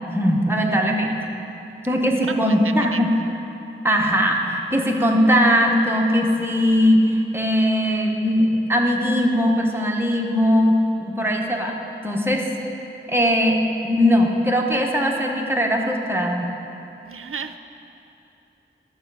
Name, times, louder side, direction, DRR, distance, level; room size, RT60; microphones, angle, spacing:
voice 1, 0.1-1.3 1.8-3.2 3.8-11.8 12.0-12.5 13.1-16.5, equal, 10° right, 0 dB, 1.1 m, -20 dB
voice 2, 17.0-17.6, right 6 dB, 80° right, 9 dB, 0.4 m, -33 dB
11.5 x 6.9 x 4.8 m, 2.8 s
wide cardioid pair, 55°, 21 cm